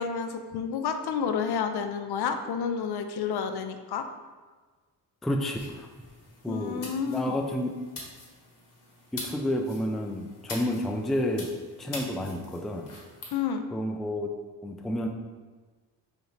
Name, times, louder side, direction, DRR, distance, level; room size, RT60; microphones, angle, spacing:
voice 1, 0.0-4.1 6.5-7.4 13.3-13.6, left 6 dB, 70° left, 7 dB, 0.5 m, -30 dB
voice 2, 5.2-5.9 6.4-7.7 9.1-11.5 11.8-12.9 13.7-14.3 14.6-15.1, left 1 dB, ahead, 3 dB, 0.3 m, -30 dB
sound 1, 5.5-13.3, left 2 dB, 50° left, 1.2 m, -44 dB
5.0 x 2.7 x 3.1 m, 1.4 s
cardioid pair, 70°, 41 cm